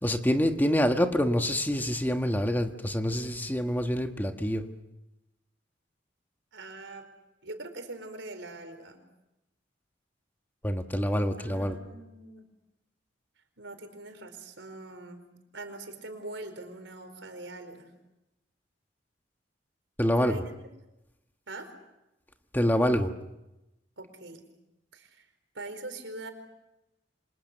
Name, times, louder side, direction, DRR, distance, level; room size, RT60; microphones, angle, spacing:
voice 1, 0.0-4.6 10.6-11.8 20.0-20.4 22.5-23.1, equal, 10° left, 5 dB, 1.5 m, -26 dB
voice 2, 6.5-7.1 7.4-9.0 11.4-12.5 13.6-15.2 15.5-17.9 20.2-20.5 21.5-21.7 24.0-24.4 24.9-25.3 25.5-26.3, right 2 dB, 90° right, 7 dB, 4.8 m, -42 dB
29.0 x 26.5 x 6.9 m, 0.94 s
head